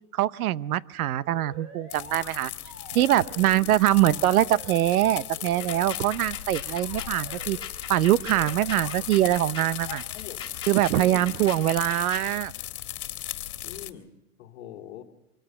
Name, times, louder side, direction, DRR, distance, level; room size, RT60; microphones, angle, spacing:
voice 1, 0.1-2.5 2.9-7.6 7.9-10.0 10.7-12.5, right 13 dB, 90° right, 19 dB, 0.8 m, -23 dB
sound 1, 1.2-2.3 2.6-3.6 3.8-4.9 5.4-6.2 6.6-7.6 8.2-9.0, right 2 dB, 30° right, 4.3 m, -46 dB
fire outside woods sticks, 1.9-13.9, left 13 dB, 85° left, 1.8 m, -37 dB
sound 2, 5.5-12.3, left 8 dB, 10° left, 2.2 m, -41 dB
voice 2, 9.8-10.4 10.9-11.3 13.6-15.0, left 11 dB, 50° left, 2 dB, 2.5 m, -42 dB
24.5 x 14.5 x 7.8 m, 0.99 s
supercardioid pair, 175°, 42 cm